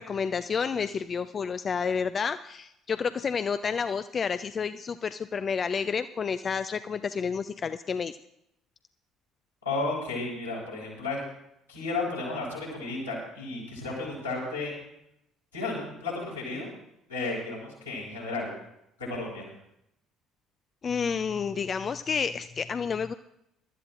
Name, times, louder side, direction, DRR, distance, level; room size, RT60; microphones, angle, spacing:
voice 1, 0.0-8.2 20.8-23.1, left 6 dB, 35° left, 11 dB, 0.4 m, -30 dB
voice 2, 9.6-11.2 11.7-14.7 15.5-16.7 17.1-18.5 19.1-19.5, left 3 dB, 85° left, -6 dB, 5.4 m, -33 dB
22.5 x 12.5 x 2.5 m, 0.78 s
figure-of-eight pair, 55°, 0 cm